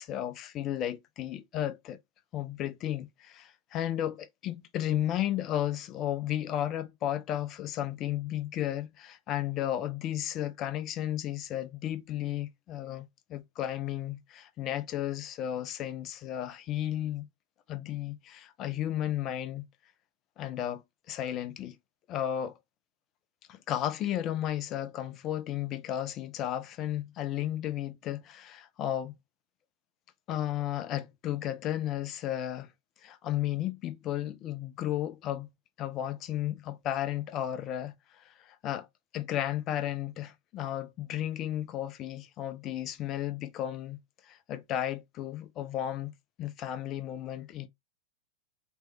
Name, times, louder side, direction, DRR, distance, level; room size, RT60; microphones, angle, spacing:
voice 1, 0.0-2.0 2.3-17.3 17.7-19.7 20.4-21.8 22.1-22.6 23.5-29.1 30.3-32.7 33.0-35.5 35.8-38.9 39.1-46.1 46.4-47.7, left 12 dB, 35° left, 0.6 m, -34 dB
3.4 x 3.1 x 2.8 m
figure-of-eight pair, 90°, 0 cm